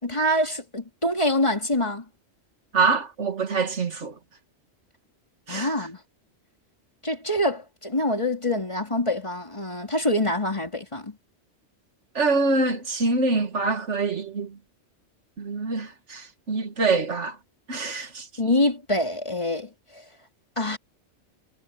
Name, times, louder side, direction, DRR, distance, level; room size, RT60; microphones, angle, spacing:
voice 1, 0.0-2.1 5.5-6.0 7.0-11.2 18.4-20.0 20.6-20.8, left 1 dB, 25° left, 3.1 m, -25 dB
voice 2, 2.7-4.2 5.5-5.7 12.1-14.6 15.4-17.4 17.7-18.3, right 3 dB, 75° right, 2.2 m, -25 dB
omnidirectional pair, 1.2 m